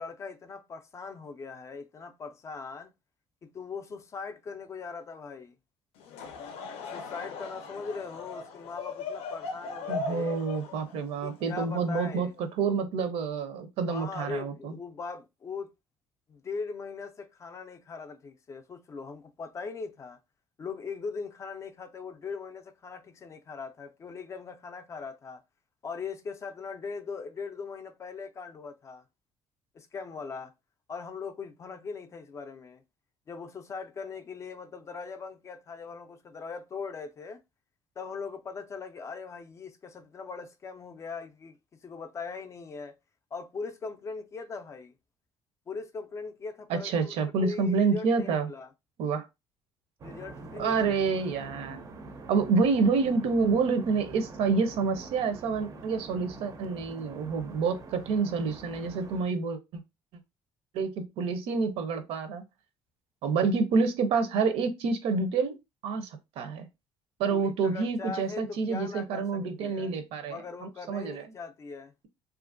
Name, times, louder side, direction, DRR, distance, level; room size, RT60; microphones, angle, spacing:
voice 1, 0.0-2.9 3.4-5.5 6.9-10.4 11.2-12.3 13.9-15.7 16.3-20.2 20.6-25.4 25.8-29.0 29.7-30.5 30.9-32.8 33.3-37.4 38.0-41.6 41.8-43.0 43.3-44.9 45.7-48.7 50.0-50.9 51.2-51.3 67.3-70.0 70.3-71.9, left 4 dB, 30° left, 0.4 m, -40 dB
Laughter / Crowd, 6.0-12.4, left 4 dB, 90° left, 0.5 m, -39 dB
voice 2, 9.9-14.7 46.7-48.5 49.0-49.3 50.6-51.9 52.3-59.6 60.7-62.4 63.2-65.6 65.8-66.1 66.4-66.7 67.2-71.2, right 4 dB, 80° right, 0.6 m, -28 dB
sound 1, 50.0-59.2, right 3 dB, 35° right, 0.5 m, -45 dB
2.8 x 2.5 x 2.5 m
cardioid pair, 140°, 10 cm